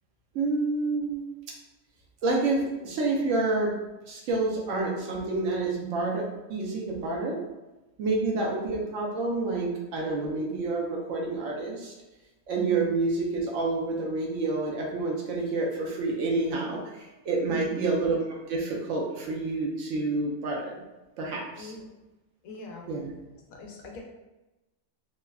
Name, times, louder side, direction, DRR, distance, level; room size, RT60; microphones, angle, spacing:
voice 1, 0.3-1.2 2.2-3.7 4.1-7.4 8.0-11.9 12.5-20.8 21.2-21.7 22.9-23.1, right 3 dB, 70° right, -2 dB, 0.8 m, -28 dB
voice 2, 22.4-22.9 23.5-24.0, left 3 dB, 80° left, 0 dB, 1.0 m, -42 dB
3.3 x 2.1 x 2.2 m, 1.1 s
omnidirectional pair, 1.5 m